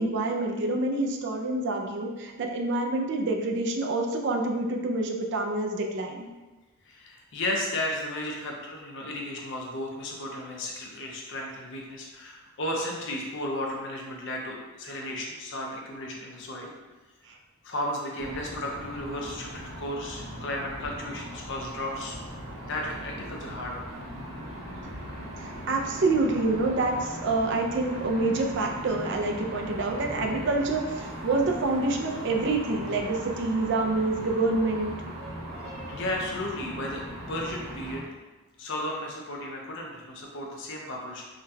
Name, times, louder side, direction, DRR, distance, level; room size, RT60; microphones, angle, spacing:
voice 1, 0.0-6.3 17.3-17.4 25.4-34.9, right 2 dB, 55° right, 2 dB, 0.4 m, -27 dB
voice 2, 6.9-16.7 17.6-22.2 22.7-23.8 35.9-37.0 37.3-38.0 38.6-41.2, left 1 dB, 55° left, 0 dB, 0.6 m, -34 dB
sound 1, 18.2-38.0, equal, 75° right, 0.8 m, -39 dB
3.7 x 2.2 x 2.7 m, 1.2 s
head